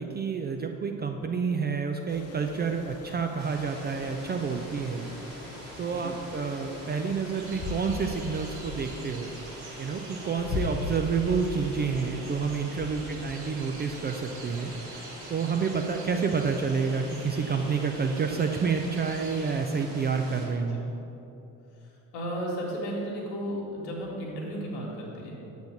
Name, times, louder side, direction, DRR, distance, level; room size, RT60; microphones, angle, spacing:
voice 1, 0.0-5.1 5.8-9.3 9.8-20.9, right 5 dB, 25° right, 4 dB, 0.3 m, -29 dB
sound 1, 2.1-19.6, left 4 dB, 30° left, 0.7 m, -42 dB
sound 2, 3.4-20.5, right 1 dB, 80° right, 1.6 m, -45 dB
sound 3, 7.3-19.5, right 3 dB, 50° right, 1.6 m, -47 dB
voice 2, 21.8-25.3, equal, 75° left, -2 dB, 1.6 m, -35 dB
6.8 x 4.1 x 6.5 m, 2.9 s
figure-of-eight pair, 50°, 50 cm